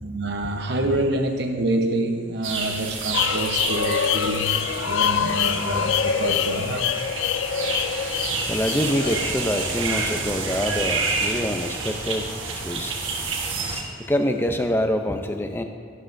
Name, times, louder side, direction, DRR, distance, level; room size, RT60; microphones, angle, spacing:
voice 1, 0.0-7.1, right 1 dB, 55° right, 5 dB, 0.8 m, -27 dB
sound 1, 2.4-13.8, right 4 dB, 80° right, 1.4 m, -29 dB
sound 2, 3.1-11.0, left 8 dB, 70° left, 0.3 m, -26 dB
voice 2, 8.5-12.3 12.5-12.9 14.1-15.6, left 1 dB, 10° left, 6 dB, 0.5 m, -25 dB
11.5 x 11.5 x 2.6 m, 2.1 s
head